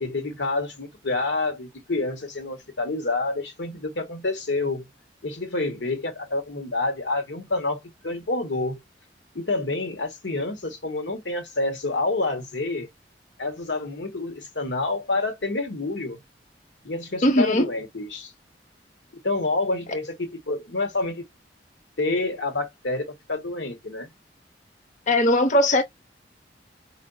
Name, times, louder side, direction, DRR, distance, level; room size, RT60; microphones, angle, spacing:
voice 1, 0.0-4.9 5.2-8.8 9.3-12.9 13.4-16.2 16.8-18.3 19.2-21.2 22.0-24.1, left 2 dB, 85° left, 1.3 m, -28 dB
voice 2, 17.2-17.6 25.1-25.8, left 1 dB, 45° left, 0.7 m, -19 dB
4.7 x 2.5 x 2.5 m
head